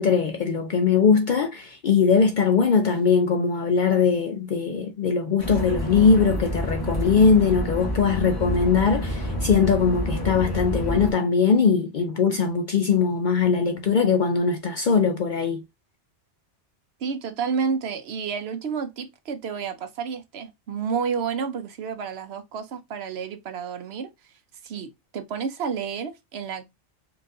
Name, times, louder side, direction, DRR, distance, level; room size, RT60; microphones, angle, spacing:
voice 1, 0.0-15.6, left 5 dB, 60° left, 0.5 m, -21 dB
sound 1, 5.4-11.1, equal, 20° left, 0.8 m, -28 dB
voice 2, 17.0-24.1 24.6-26.7, right 6 dB, 65° right, 0.8 m, -30 dB
4.6 x 2.5 x 2.5 m
omnidirectional pair, 1.2 m